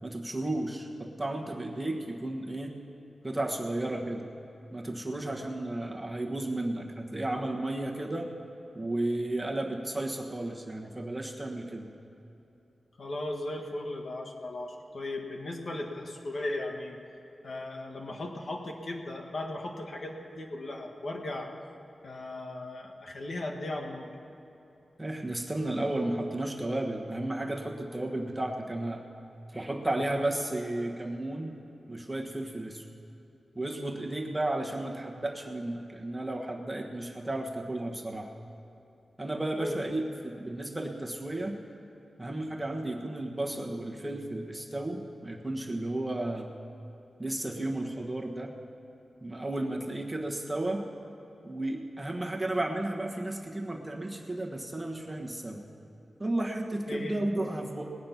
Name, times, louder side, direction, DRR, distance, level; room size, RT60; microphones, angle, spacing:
voice 1, 0.0-2.8 3.2-4.3 4.7-8.3 8.7-11.9 25.0-29.0 29.5-31.5 31.9-32.9 33.5-38.3 39.2-41.5 42.2-46.5 47.2-48.5 49.2-50.8 51.4-55.6 56.2-58.0, right 1 dB, 10° right, 0 dB, 1.3 m, -33 dB
voice 2, 13.0-17.0 17.4-21.5 22.0-24.1 39.6-39.9 56.9-57.3, left 1 dB, 60° left, 1 dB, 1.5 m, -37 dB
19.5 x 8.7 x 5.8 m, 2.9 s
wide cardioid pair, 95°, 0 cm